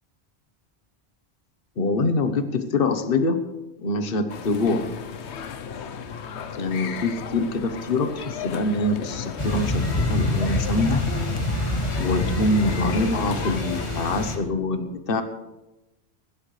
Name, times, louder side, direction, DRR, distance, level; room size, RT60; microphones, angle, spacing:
voice 1, 1.8-3.4 3.8-4.9 6.5-11.0 12.0-15.2, left 2 dB, 60° left, 8 dB, 1.3 m, -24 dB
sound 1, 4.3-14.2, left 7 dB, 85° left, 1.1 m, -35 dB
sound 2, 9.4-14.4, left 1 dB, 30° left, 2.1 m, -26 dB
23.0 x 12.0 x 3.3 m, 1.0 s
omnidirectional pair, 1.1 m